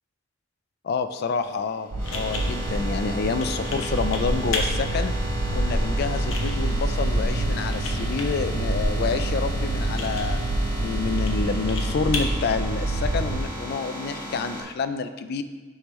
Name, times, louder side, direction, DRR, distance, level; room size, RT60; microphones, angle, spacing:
voice 1, 0.8-5.1 5.5-10.4 10.8-15.4, left 5 dB, 50° left, 10 dB, 0.3 m, -28 dB
sound 1, 1.1-14.6, equal, 10° left, 1.2 m, -35 dB
sound 2, 1.4-13.5, left 3 dB, 75° left, 0.9 m, -37 dB
sound 3, 1.9-13.4, right 1 dB, 85° right, 0.6 m, -27 dB
9.6 x 3.5 x 3.1 m, 1.3 s
head